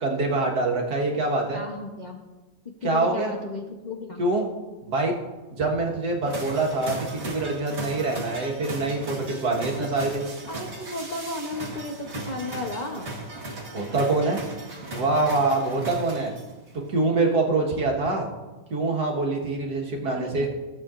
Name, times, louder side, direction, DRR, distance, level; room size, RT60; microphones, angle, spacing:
voice 1, 0.0-1.6 2.8-3.3 4.2-4.5 4.8-5.2 5.5-10.2 13.7-14.4 14.9-16.3 16.9-18.3 18.7-20.5, right 3 dB, 60° right, -1 dB, 1.9 m, -25 dB
voice 2, 1.5-2.2 2.8-4.2 10.5-13.1 20.1-20.5, left 2 dB, 45° left, 1 dB, 0.6 m, -34 dB
sound 1, 6.2-16.7, right 2 dB, 40° right, 1.5 m, -37 dB
16.0 x 7.6 x 2.5 m, 1.2 s
omnidirectional pair, 2.0 m